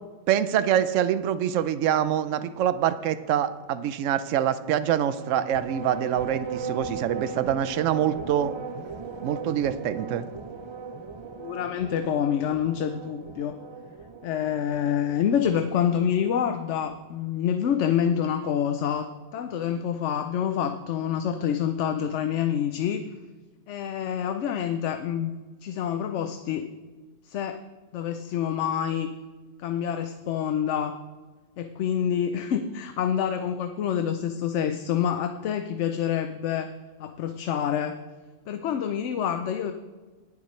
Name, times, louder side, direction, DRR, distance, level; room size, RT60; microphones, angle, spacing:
voice 1, 0.3-8.5 9.2-10.2, right 10 dB, 80° right, 13 dB, 1.0 m, -25 dB
sound 1, 5.1-17.0, right 5 dB, 40° right, 0.4 m, -38 dB
voice 2, 11.4-13.6 14.2-23.0 23.7-25.3 25.6-26.7 27.2-27.6 27.9-29.1 29.6-31.0 31.6-36.7 37.0-38.0 38.5-39.7, left 9 dB, 70° left, 7 dB, 0.9 m, -27 dB
19.0 x 7.3 x 3.2 m, 1.3 s
omnidirectional pair, 1.3 m